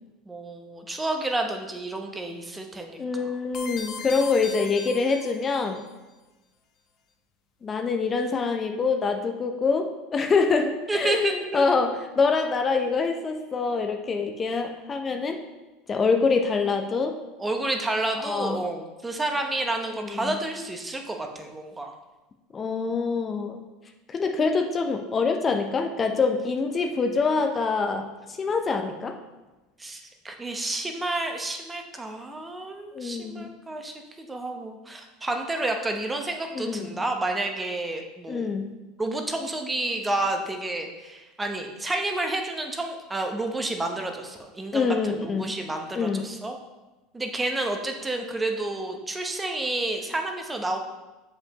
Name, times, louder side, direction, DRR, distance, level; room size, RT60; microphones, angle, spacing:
voice 1, 0.3-3.3 10.9-11.7 17.4-22.0 29.8-38.5 39.0-46.6 47.1-50.8, right 2 dB, 15° right, 4 dB, 0.9 m, -30 dB
voice 2, 3.0-5.8 7.6-15.4 15.9-17.1 18.2-18.6 20.0-20.3 22.5-23.6 24.1-29.2 32.9-33.5 36.5-36.9 38.3-38.7 44.7-45.5 45.9-46.2, left 4 dB, 30° left, 4 dB, 0.6 m, -25 dB
sound 1, 3.5-5.9, left 5 dB, 50° left, 0.9 m, -38 dB
7.1 x 5.4 x 2.9 m, 1.1 s
hypercardioid pair, 95°, 0 cm